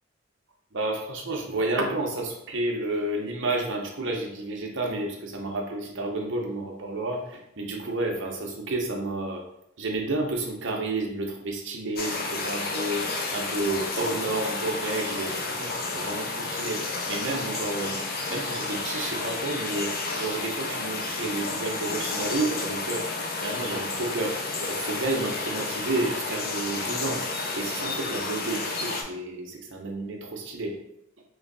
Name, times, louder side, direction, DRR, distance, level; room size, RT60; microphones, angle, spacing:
voice 1, 0.7-9.4 9.8-18.0 18.3-23.1 23.4-27.2 27.5-30.8, right 2 dB, 55° right, 0 dB, 0.6 m, -31 dB
sound 1, 12.0-29.0, left 3 dB, 45° left, 0.4 m, -31 dB
3.1 x 2.6 x 3.8 m, 0.78 s
head